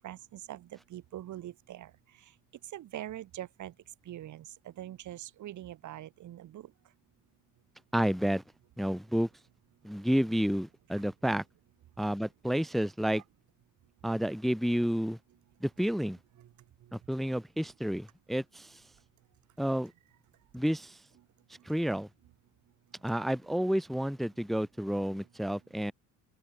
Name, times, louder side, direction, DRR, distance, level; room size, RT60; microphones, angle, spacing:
voice 1, 0.0-1.9 2.7-3.7 4.1-4.4 4.8-6.7, right 13 dB, 55° right, 1.9 m, -43 dB
voice 2, 7.9-8.4 8.8-9.3 9.8-11.4 12.0-13.2 14.0-15.2 15.6-16.2 16.9-18.8 19.6-19.9 20.5-21.0 21.6-22.1 23.0-25.9, equal, ahead, 0.8 m, -30 dB
open air
cardioid pair, 125°, 34 cm